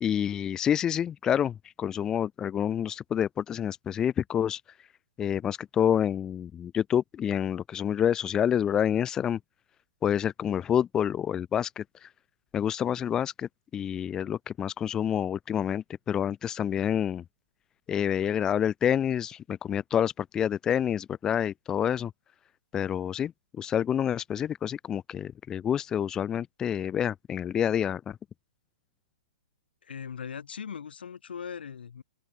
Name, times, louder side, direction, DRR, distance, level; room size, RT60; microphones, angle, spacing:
voice 1, 0.0-4.6 5.2-9.4 10.0-12.1 12.5-17.2 17.9-22.1 22.7-23.3 23.6-28.2, left 9 dB, 10° left, 1.0 m, -28 dB
voice 2, 29.8-32.0, left 7 dB, 85° left, 5.1 m, -39 dB
open air
hypercardioid pair, 165°, 5 cm